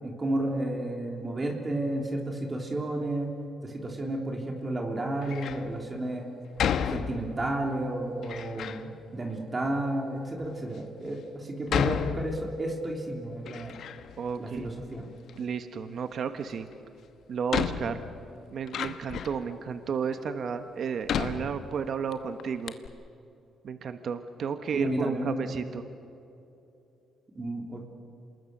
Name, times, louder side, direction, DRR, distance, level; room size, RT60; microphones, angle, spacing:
voice 1, 0.0-3.3 3.6-6.3 6.9-13.7 14.4-15.1 24.7-25.4 27.3-27.8, right 1 dB, 30° right, 1 dB, 3.3 m, -32 dB
Door, 5.2-5.7 6.6-7.6 8.2-8.9 9.6-9.7 10.4-10.5 11.7-12.8 13.2-14.2 14.5-15.4 16.7-16.8 17.5-19.5 20.1-20.2 21.1-22.1 22.4-22.5 22.7-22.9, left 8 dB, 70° left, 1.1 m, -32 dB
voice 2, 14.2-14.7 15.4-16.7 17.3-18.0 18.5-22.7 23.6-25.8, right 6 dB, 60° right, 8 dB, 1.3 m, -32 dB
27.0 x 20.5 x 6.8 m, 2.8 s
cardioid pair, 90°, 0 cm